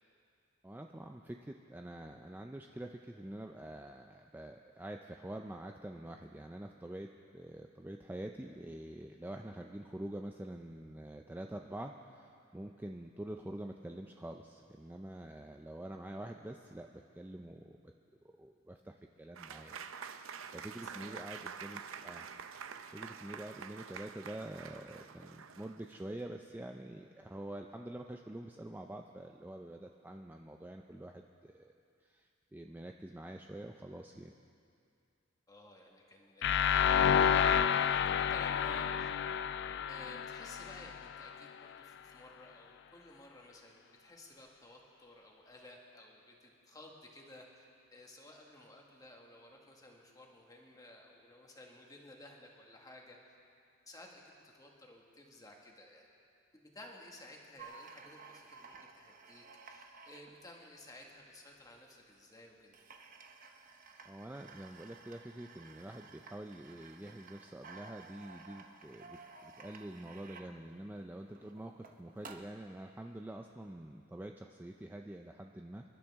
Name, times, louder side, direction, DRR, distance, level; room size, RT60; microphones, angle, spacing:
voice 1, 0.6-7.1 7.3-17.7 18.4-19.8 20.1-22.3 22.9-31.7 32.0-34.3 64.1-75.8, right 1 dB, 10° right, 3 dB, 0.4 m, -46 dB
Applause / Crowd, 19.4-26.2, right 6 dB, 70° right, 0.6 m, -47 dB
voice 2, 20.8-21.3 35.5-39.1 39.9-47.6 47.9-53.2 53.9-56.1 56.5-62.8, left 1 dB, 20° left, -1 dB, 1.7 m, -54 dB
sound 1, 36.4-41.3, left 8 dB, 55° left, 0.4 m, -30 dB
sound 2, 57.6-61.3 62.1-62.2 62.4-62.5 62.7-72.7, right 4 dB, 40° right, 0.9 m, -54 dB
26.5 x 11.5 x 3.6 m, 2.5 s
head